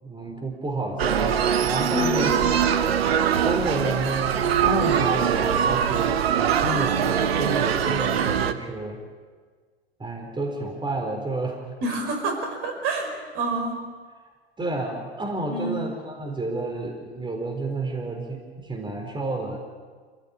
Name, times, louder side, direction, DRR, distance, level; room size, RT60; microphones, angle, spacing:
voice 1, 0.0-2.4 3.4-6.2 6.6-9.0 10.0-11.6 14.6-19.6, right 2 dB, 15° right, 2 dB, 4.4 m, -30 dB
sound 1, 1.0-8.5, right 8 dB, 70° right, 1.3 m, -22 dB
voice 2, 1.9-2.3 11.8-13.8 15.5-15.8, right 2 dB, 45° right, 4 dB, 5.3 m, -28 dB
27.5 x 16.0 x 8.5 m, 1.6 s
figure-of-eight pair, 85°, 32 cm